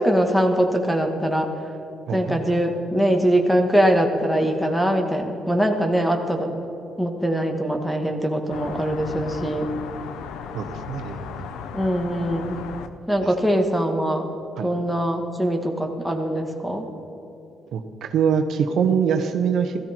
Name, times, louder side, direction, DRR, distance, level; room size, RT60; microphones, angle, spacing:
voice 1, 0.0-1.5 2.1-6.5 7.0-9.7 11.7-12.6 13.1-14.3 14.6-16.9, equal, ahead, 4 dB, 1.9 m, -22 dB
voice 2, 2.1-2.4 10.5-11.4 13.2-13.3 14.6-14.7 17.7-19.8, right 7 dB, 70° right, 7 dB, 1.0 m, -24 dB
sound 1, 8.5-12.9, left 7 dB, 90° left, 0.8 m, -35 dB
16.0 x 14.0 x 4.6 m, 3.0 s
cardioid pair, 90°, 0 cm